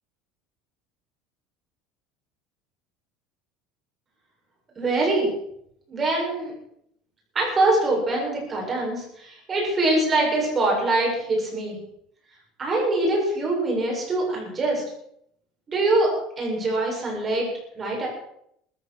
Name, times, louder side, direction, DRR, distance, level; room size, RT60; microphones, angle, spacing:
voice 1, 4.8-5.3 5.9-6.5 7.3-11.8 12.6-14.8 15.7-17.5 17.8-18.1, right 2 dB, 25° right, -1 dB, 7.4 m, -23 dB
20.0 x 14.5 x 4.8 m, 0.72 s
cardioid pair, 155°, 0 cm